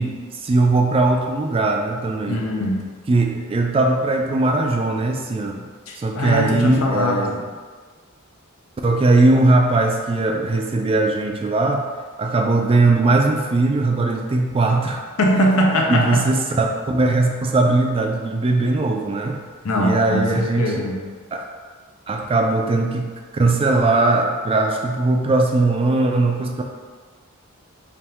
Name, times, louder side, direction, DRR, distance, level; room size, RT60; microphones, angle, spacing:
voice 1, 0.0-2.4 3.1-5.7 6.0-7.5 8.8-11.9 12.2-15.0 15.9-19.4 19.8-20.7 21.3-21.5 22.1-26.6, right 2 dB, 25° right, 2 dB, 0.3 m, -19 dB
voice 2, 2.3-2.9 5.9-7.3 15.2-16.3 19.6-21.0, equal, 75° left, -1 dB, 0.7 m, -21 dB
3.5 x 2.6 x 4.2 m, 1.5 s
head